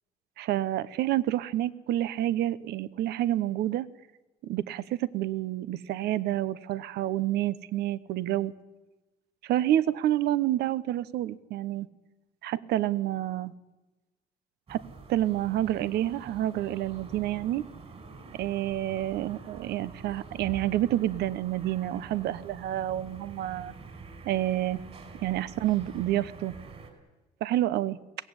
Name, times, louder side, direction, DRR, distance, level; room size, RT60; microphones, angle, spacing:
voice 1, 0.4-3.9 4.4-8.5 9.4-11.9 12.4-13.5 14.7-14.8 15.1-17.6 18.3-23.7 24.3-24.8 25.2-26.5 27.4-28.0, right 13 dB, 75° right, 17 dB, 0.9 m, -28 dB
sound 1, 14.7-26.9, right 4 dB, 40° right, 5.2 m, -46 dB
22.0 x 17.5 x 9.8 m, 1.1 s
cardioid pair, 110°, 17 cm